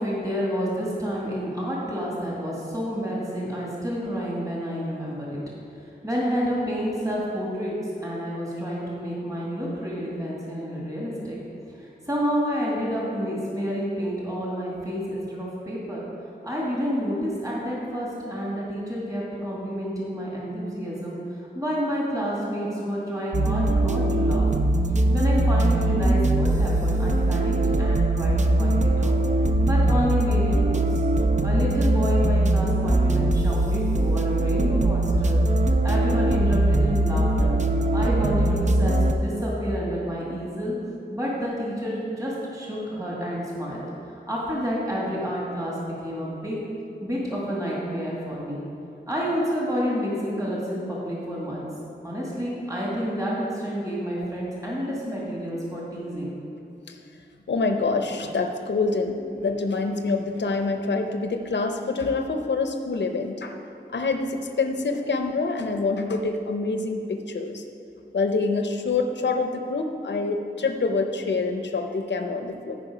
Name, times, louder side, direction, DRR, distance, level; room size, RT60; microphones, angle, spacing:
voice 1, 0.0-5.4 6.0-7.7 8.0-11.4 11.7-16.0 16.4-24.5 24.9-29.1 29.6-31.0 31.4-35.4 35.8-37.6 37.9-40.8 41.1-43.8 44.3-46.6 47.0-48.7 49.1-51.7 52.0-56.3, equal, 20° right, -5 dB, 2.1 m, -29 dB
sound 1, 23.3-39.1, right 1 dB, 40° right, 0.6 m, -21 dB
voice 2, 57.5-63.6 63.9-67.6 68.1-72.8, left 3 dB, 75° left, 5 dB, 0.6 m, -26 dB
14.0 x 5.3 x 5.0 m, 2.6 s
wide cardioid pair, 80°, 18 cm